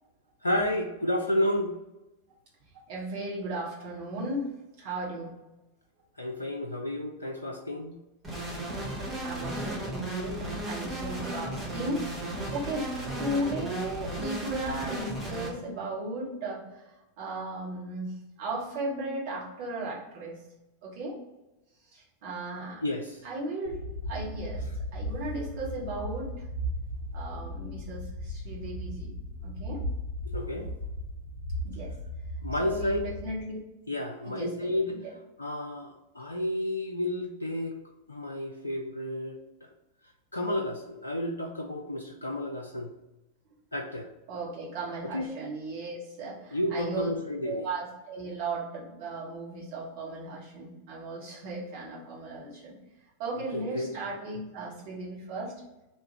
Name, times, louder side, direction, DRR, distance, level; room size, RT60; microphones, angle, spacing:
voice 1, 0.4-1.7 6.2-8.0 22.8-23.2 30.3-30.7 32.4-33.0 33.9-35.0 35.4-37.7 38.1-39.7 40.3-42.9 43.7-44.1 45.0-45.3 46.5-47.7 53.5-53.9, left 1 dB, 80° left, 3 dB, 0.3 m, -31 dB
voice 2, 2.9-4.5 4.8-5.3 9.2-12.0 12.5-12.9 13.2-16.8 17.2-20.4 20.8-21.2 21.9-22.8 23.2-24.6 24.9-26.3 27.1-29.1 29.4-29.8 31.6-31.9 32.6-33.6 34.2-35.1 44.3-47.1 47.4-52.7 53.2-55.5, right 2 dB, 50° right, -5 dB, 1.5 m, -36 dB
sound 1, 8.2-15.5, right 1 dB, 10° right, 1.3 m, -35 dB
sound 2, 23.7-33.4, equal, 60° left, 1.2 m, -36 dB
3.3 x 2.7 x 4.2 m, 0.98 s
figure-of-eight pair, 90°, 0 cm